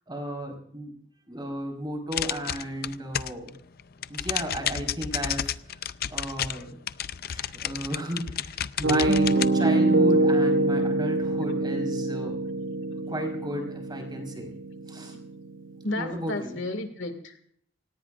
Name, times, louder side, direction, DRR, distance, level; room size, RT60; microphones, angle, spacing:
voice 1, 0.1-0.9 1.3-3.5 4.1-5.5 6.1-6.8 7.3-12.4 13.1-14.5 14.9-15.2 16.0-16.6, equal, 25° right, 2 dB, 4.6 m, -34 dB
sound 1, 2.1-3.5 3.8-9.5, left 10 dB, 50° left, 0.5 m, -31 dB
Piano, 8.8-16.7, right 2 dB, 90° right, 1.8 m, -25 dB
voice 2, 15.8-17.4, left 2 dB, 70° left, 7 dB, 2.1 m, -32 dB
27.5 x 18.5 x 2.5 m, 0.63 s
head